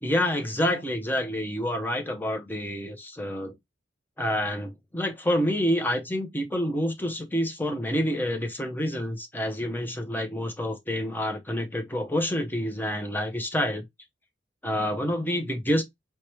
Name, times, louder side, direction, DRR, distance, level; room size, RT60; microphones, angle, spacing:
voice 1, 0.0-3.5 4.2-13.8 14.6-15.8, equal, 10° left, 0.7 m, -28 dB
4.6 x 2.2 x 3.0 m
head